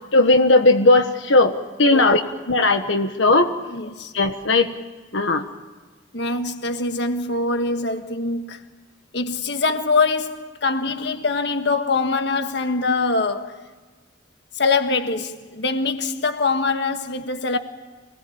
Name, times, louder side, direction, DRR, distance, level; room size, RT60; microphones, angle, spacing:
voice 1, 0.1-2.2 2.5-3.5 4.1-4.7 5.1-5.4, left 2 dB, 80° left, 1.4 m, -17 dB
voice 2, 1.9-2.2 3.7-4.1 6.1-8.7 9.1-13.6 14.6-17.6, left 3 dB, 60° left, 1.6 m, -23 dB
27.0 x 19.5 x 8.7 m
head